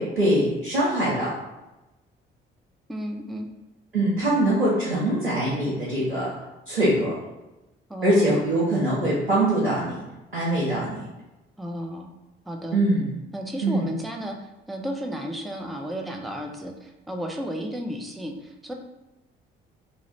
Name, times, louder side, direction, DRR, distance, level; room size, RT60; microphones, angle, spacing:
voice 1, 0.0-1.3 3.9-6.3 6.7-7.1 8.0-10.0 10.3-11.0 12.7-13.1 13.6-13.8, right 1 dB, 90° right, -9 dB, 0.6 m, -23 dB
voice 2, 2.9-3.5 7.9-8.4 11.6-12.1 12.5-12.8 13.3-18.7, equal, ahead, 2 dB, 0.4 m, -33 dB
3.0 x 2.4 x 2.9 m, 1.0 s
figure-of-eight pair, 45°, 29 cm